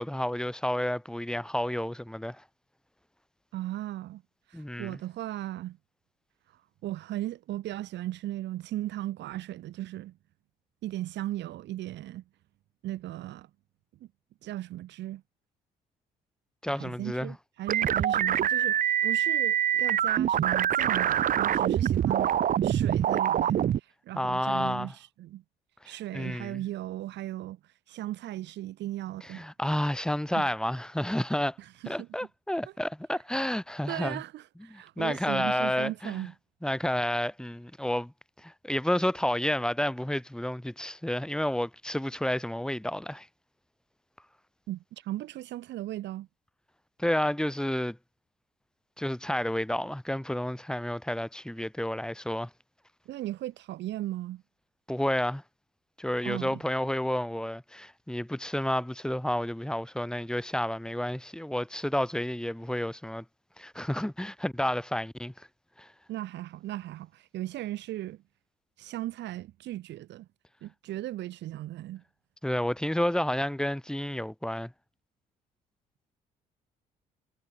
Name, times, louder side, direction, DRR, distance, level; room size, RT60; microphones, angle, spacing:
voice 1, 0.0-2.4 4.5-5.0 16.6-17.3 24.1-24.9 25.8-26.6 29.3-31.6 31.9-34.2 34.7-36.3 36.6-38.1 38.4-43.3 47.0-48.0 49.0-52.5 54.9-55.4 56.0-63.2 63.6-65.5 65.8-65.9 72.4-74.7, left 1 dB, 5° left, 4.2 m, -30 dB
voice 2, 3.5-4.2 4.5-5.8 6.8-10.2 10.8-12.2 12.8-13.5 14.0-14.1 14.4-15.2 16.7-22.3 22.6-25.4 25.8-27.6 27.9-29.4 30.3-30.5 31.6-32.1 33.9-36.3 44.7-46.3 53.1-54.4 56.2-56.6 66.1-68.2 68.8-70.3 70.6-72.0, right 14 dB, 60° right, 3.8 m, -37 dB
sound 1, 17.7-23.8, right 10 dB, 40° right, 0.8 m, -25 dB
figure-of-eight pair, 50°, 21 cm